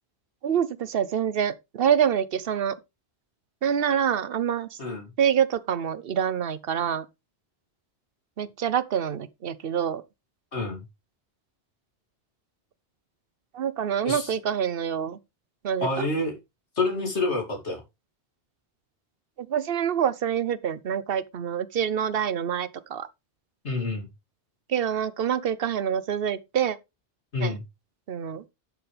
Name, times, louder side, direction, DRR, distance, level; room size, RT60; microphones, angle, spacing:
voice 1, 0.4-2.7 3.6-4.7 5.2-7.0 8.4-10.0 13.5-15.2 15.6-16.1 19.4-23.1 24.7-26.8 27.4-27.6 28.1-28.4, right 8 dB, 60° right, 1.0 m, -26 dB
voice 2, 4.8-5.1 10.5-10.8 14.0-14.3 15.8-16.3 16.8-17.8 23.6-24.1 27.3-27.6, left 3 dB, 85° left, 3.0 m, -28 dB
11.5 x 7.0 x 3.4 m
omnidirectional pair, 1.1 m